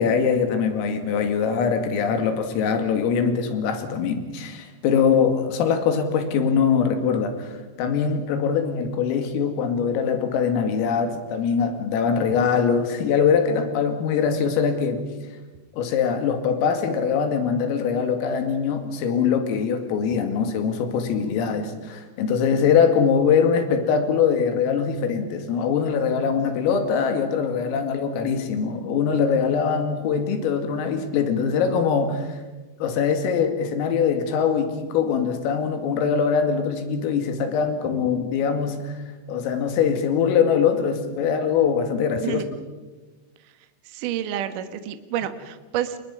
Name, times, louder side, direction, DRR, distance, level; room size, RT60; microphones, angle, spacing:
voice 1, 0.0-15.0 15.8-32.4 32.8-38.9 39.3-42.4, left 6 dB, 85° left, 6 dB, 4.9 m, -22 dB
voice 2, 43.9-46.0, right 10 dB, 75° right, 9 dB, 1.9 m, -29 dB
29.5 x 23.5 x 5.5 m, 1.2 s
omnidirectional pair, 5.9 m